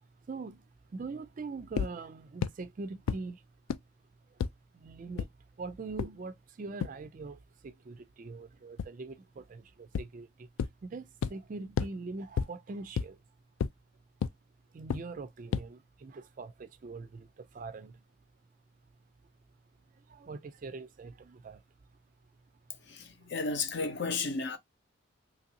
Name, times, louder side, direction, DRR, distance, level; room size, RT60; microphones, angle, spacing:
voice 1, 0.3-3.5 4.3-4.4 4.7-5.3 5.6-13.2 14.7-18.0 19.9-21.6 23.2-23.3, right 3 dB, 40° right, 0.3 m, -43 dB
sound 1, 1.8-1.9 2.4-2.5 3.1-3.2 3.7-3.8 4.4-4.5 5.2-5.3 6.0-6.1 6.8-6.9 8.8-8.9 10.0-10.1 10.6-10.7 11.2-11.3 11.8-11.9 12.4-12.5 13.0-13.1 13.6-13.7 14.2-14.3 14.9-15.0 15.5-15.6, left 6 dB, 70° left, 0.3 m, -29 dB
voice 2, 22.9-24.6, left 4 dB, 50° left, 0.7 m, -33 dB
3.1 x 2.6 x 2.7 m
head